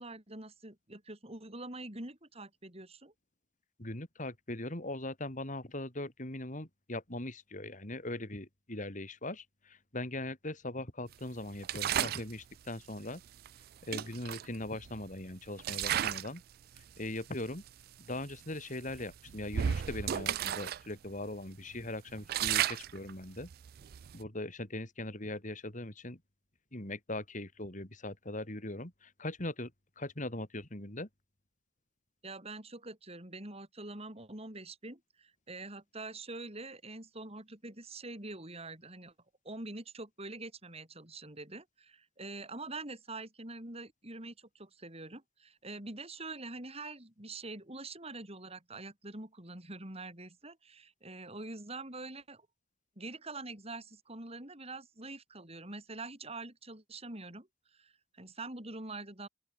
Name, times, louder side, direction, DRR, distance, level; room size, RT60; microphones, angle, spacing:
voice 1, 0.0-3.1 32.2-39.1 39.4-52.5 53.0-59.3, right 2 dB, 35° right, 6.7 m, -45 dB
voice 2, 3.8-13.2 13.8-16.4 16.7-17.6 18.0-23.5 24.1-26.2 26.7-29.7 30.0-31.1, left 1 dB, 45° left, 4.4 m, -40 dB
sound 1, 11.6-12.3 13.5-13.6 13.9-15.1 15.6-16.4 16.7-17.0 17.7-17.8 18.1-18.3 18.9-20.8 21.1-21.2 21.7-24.2, right 10 dB, 55° right, 0.3 m, -34 dB
open air
head